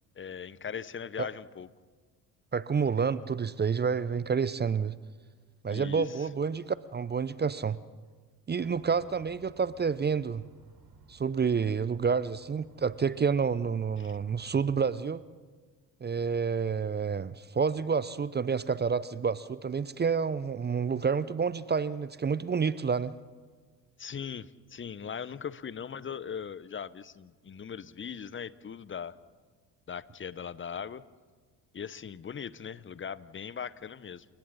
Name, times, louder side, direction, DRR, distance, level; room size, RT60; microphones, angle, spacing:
voice 1, 0.2-1.7 5.7-6.3 14.0-14.2 24.0-29.1 29.9-31.0 31.7-34.3, left 7 dB, 25° left, 18 dB, 0.9 m, -39 dB
voice 2, 2.5-4.9 5.6-7.8 8.5-10.4 11.1-15.2 16.0-23.1, right 6 dB, 20° right, 18 dB, 0.7 m, -29 dB
sound 1, 8.6-14.9, right 4 dB, 45° right, 4.4 m, -58 dB
29.0 x 27.0 x 4.2 m, 1.5 s
figure-of-eight pair, 50°, 47 cm